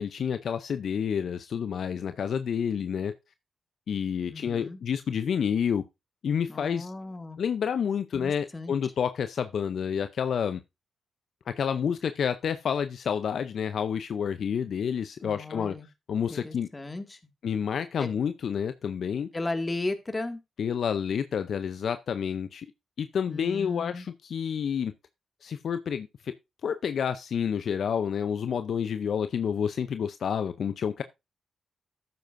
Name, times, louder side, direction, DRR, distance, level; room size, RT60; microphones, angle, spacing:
voice 1, 0.0-3.1 3.9-5.8 6.2-6.9 7.4-10.6 11.5-15.8 16.1-16.7 17.4-19.3 20.6-22.7 23.0-24.9 25.4-26.3 26.6-31.0, left 7 dB, 65° left, 0.6 m, -29 dB
voice 2, 4.3-4.8 6.5-7.4 8.1-8.7 15.2-15.9 16.3-17.2 18.0-18.1 19.3-20.4 23.3-24.1, left 2 dB, 30° left, 1.9 m, -35 dB
12.0 x 9.4 x 2.6 m
hypercardioid pair, 40°, 0 cm